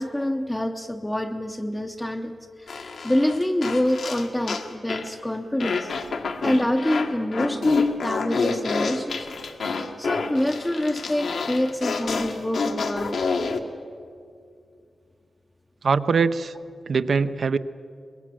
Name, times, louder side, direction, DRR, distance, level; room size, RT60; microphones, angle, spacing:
voice 1, 0.0-5.9 6.4-9.3 10.0-13.2, left 1 dB, 10° left, 2 dB, 0.7 m, -26 dB
sound 1, 2.7-5.1 5.6-13.6, left 4 dB, 75° left, 1.6 m, -28 dB
voice 2, 15.8-16.6 16.9-17.6, right 5 dB, 55° right, 12 dB, 0.7 m, -22 dB
23.0 x 21.5 x 7.6 m, 2.3 s
wide cardioid pair, 160°, 0 cm